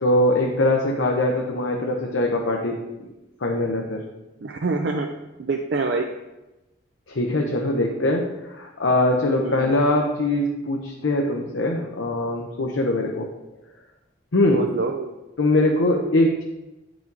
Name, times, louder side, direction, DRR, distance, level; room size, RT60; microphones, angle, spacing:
voice 1, 0.0-3.1 3.4-4.0 7.1-13.3 14.3-14.7 15.4-16.4, left 1 dB, 80° left, 1 dB, 0.8 m, -22 dB
voice 2, 4.4-5.1 5.4-6.1 9.4-9.7 14.5-15.1, right 3 dB, 60° right, 3 dB, 0.5 m, -26 dB
8.5 x 4.8 x 4.0 m, 1.0 s
head